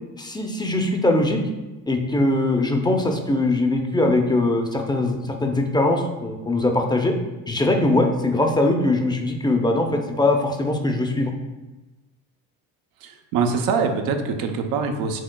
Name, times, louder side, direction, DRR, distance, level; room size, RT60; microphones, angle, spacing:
voice 1, 0.2-1.4 1.9-7.1 7.5-11.3, left 2 dB, 15° left, 3 dB, 0.5 m, -21 dB
voice 2, 13.0-15.2, right 5 dB, 80° right, 4 dB, 0.7 m, -24 dB
6.3 x 3.7 x 2.2 m, 1.1 s
cardioid pair, 100°, 34 cm